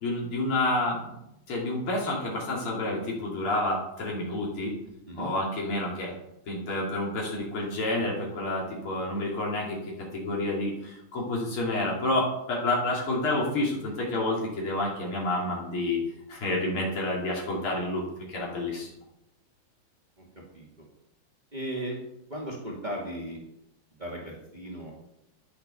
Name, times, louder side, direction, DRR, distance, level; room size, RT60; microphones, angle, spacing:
voice 1, 0.0-1.1 1.5-4.7 5.2-6.2 6.5-16.0 16.3-18.0 18.3-18.9, left 2 dB, 90° left, -3 dB, 3.5 m, -29 dB
voice 2, 21.5-22.0 22.3-23.4 24.0-24.9, right 1 dB, 20° right, -2 dB, 2.4 m, -36 dB
10.5 x 10.5 x 5.7 m, 0.83 s
omnidirectional pair, 2.3 m